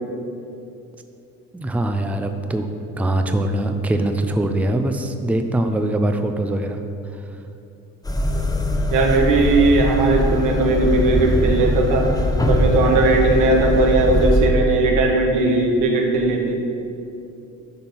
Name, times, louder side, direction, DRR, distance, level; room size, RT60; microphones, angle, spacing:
voice 1, 1.5-2.7 3.0-6.8, right 1 dB, 5° right, 6 dB, 0.5 m, -22 dB
sound 1, 8.0-14.5, left 1 dB, 10° left, 0.9 m, -21 dB
voice 2, 8.9-12.1 12.5-16.6, right 3 dB, 85° right, 1 dB, 1.3 m, -18 dB
10.5 x 4.4 x 5.5 m, 2.7 s
cardioid pair, 105°, 31 cm